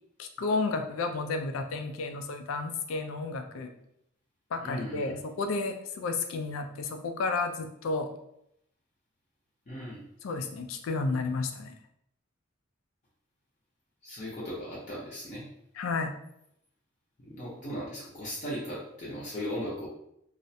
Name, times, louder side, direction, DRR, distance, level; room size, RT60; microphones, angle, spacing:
voice 1, 0.2-3.7 4.5-8.1 10.2-11.7 15.8-16.1, left 3 dB, 85° left, 6 dB, 0.3 m, -32 dB
voice 2, 4.6-5.2 9.7-10.0 14.0-15.5 17.2-19.9, equal, 40° left, -7 dB, 0.6 m, -37 dB
2.4 x 2.1 x 2.6 m, 0.76 s
head